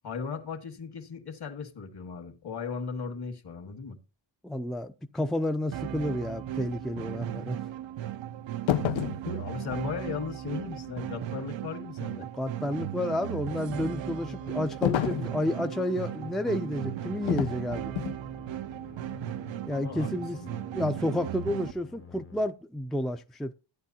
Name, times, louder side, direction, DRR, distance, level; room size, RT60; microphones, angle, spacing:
voice 1, 0.0-4.0 9.2-12.3 19.7-20.6, left 5 dB, 55° left, 1.9 m, -37 dB
voice 2, 4.4-7.6 12.2-17.9 19.7-20.4 20.7-23.5, left 1 dB, ahead, 0.5 m, -31 dB
sound 1, 5.7-21.7, right 12 dB, 75° right, 0.6 m, -37 dB
sound 2, 8.7-9.3 14.8-15.3 17.3-17.6 18.0-18.2, left 13 dB, 80° left, 0.7 m, -28 dB
sound 3, 13.7-22.5, left 5 dB, 30° left, 0.8 m, -48 dB
13.5 x 9.5 x 2.8 m
cardioid pair, 90°, 45 cm